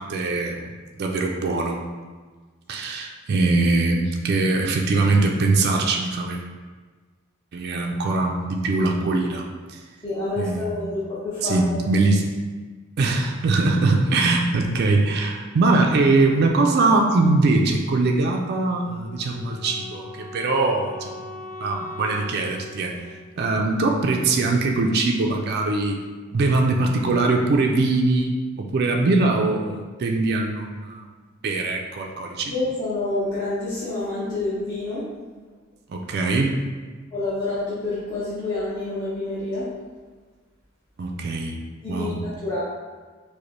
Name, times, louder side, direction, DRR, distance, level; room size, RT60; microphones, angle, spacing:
voice 1, 0.0-1.9 2.7-6.4 7.5-9.8 10.4-10.9 11.4-12.3 13.0-21.3 21.6-23.1 23.4-26.0 26.3-31.1 31.4-32.5 35.9-36.5 41.0-41.6 41.9-42.2, right 3 dB, 50° right, 1 dB, 0.4 m, -22 dB
voice 2, 10.0-11.8 32.5-35.0 37.1-39.7 41.8-42.6, left 2 dB, 20° left, -14 dB, 0.9 m, -28 dB
Wind instrument woodwind instrument, 18.9-24.0, left 2 dB, 15° right, 0.9 m, -40 dB
4.9 x 2.1 x 3.1 m, 1.4 s
head